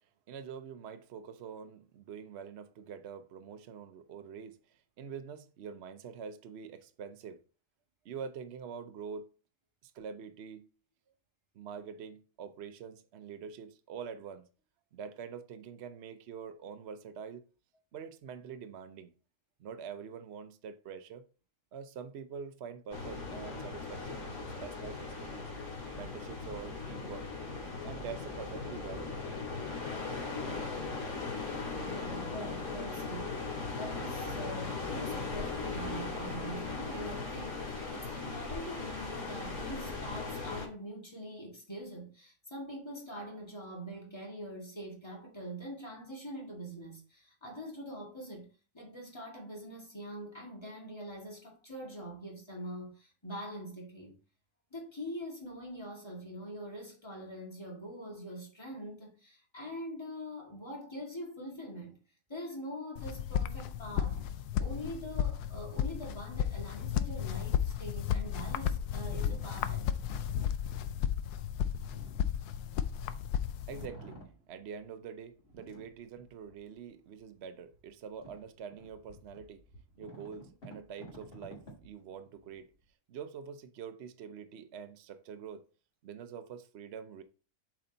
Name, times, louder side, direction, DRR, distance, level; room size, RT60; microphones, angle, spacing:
voice 1, 0.3-4.6 5.0-7.4 8.0-9.3 9.8-10.7 11.5-14.5 14.9-17.4 17.9-19.1 19.6-21.2 21.7-25.5 25.9-27.3 27.8-29.1 31.7-31.9 73.7-74.2 74.5-79.6 80.0-82.7 83.1-85.6 86.0-87.2, right 7 dB, 55° right, 0.8 m, -45 dB
sound 1, 22.9-40.7, left 4 dB, 70° left, 3.0 m, -38 dB
voice 2, 31.8-33.4 33.7-54.1 54.7-62.0 62.3-64.2 64.6-70.0, equal, 15° left, 2.0 m, -44 dB
sound 2, 63.0-73.9, left 9 dB, 85° left, 1.1 m, -33 dB
sound 3, 63.4-73.2 73.5-75.0 75.4-76.7 77.2-77.3 77.7-82.8, right 1 dB, 35° left, 2.2 m, -54 dB
7.7 x 4.1 x 3.9 m
omnidirectional pair, 1.6 m